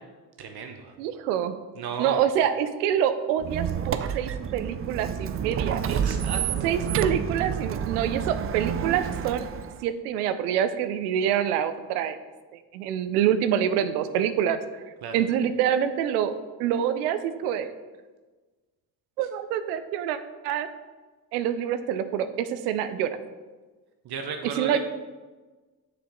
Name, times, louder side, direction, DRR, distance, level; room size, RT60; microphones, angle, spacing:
voice 1, 0.4-1.0 1.8-2.2 5.9-6.8 15.0-15.1 24.0-24.8, right 6 dB, 55° right, 4 dB, 0.8 m, -35 dB
voice 2, 1.0-1.5 2.0-5.8 6.6-9.5 9.8-12.2 12.7-14.6 15.1-17.7 19.2-20.2 20.4-20.7 21.3-23.2 24.4-24.8, right 9 dB, 90° right, 12 dB, 0.5 m, -26 dB
Squeak, 3.4-9.8, right 8 dB, 30° right, 0.4 m, -29 dB
6.9 x 5.0 x 3.7 m, 1.3 s
hypercardioid pair, 50°, 45 cm